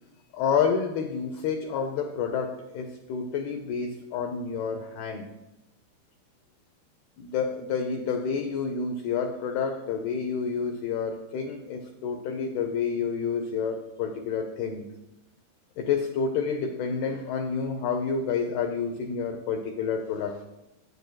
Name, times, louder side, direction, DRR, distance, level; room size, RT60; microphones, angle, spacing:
voice 1, 0.3-5.3 7.2-14.9 15.8-20.4, left 6 dB, 85° left, 4 dB, 2.2 m, -29 dB
15.5 x 9.4 x 2.3 m, 0.95 s
omnidirectional pair, 5.4 m